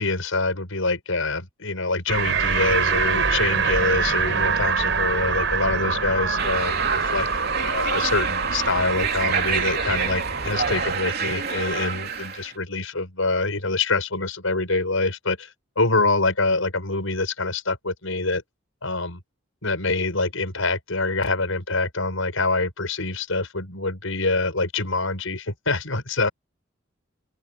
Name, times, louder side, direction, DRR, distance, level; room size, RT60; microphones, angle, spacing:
voice 1, 0.0-7.3 7.5-15.5 15.8-18.4 18.8-19.2 19.6-26.3, left 3 dB, 90° left, 6.6 m, -25 dB
sound 1, 2.1-11.0, right 5 dB, 65° right, 4.6 m, -25 dB
sound 2, 6.4-12.5, right 6 dB, 50° right, 3.4 m, -28 dB
open air
head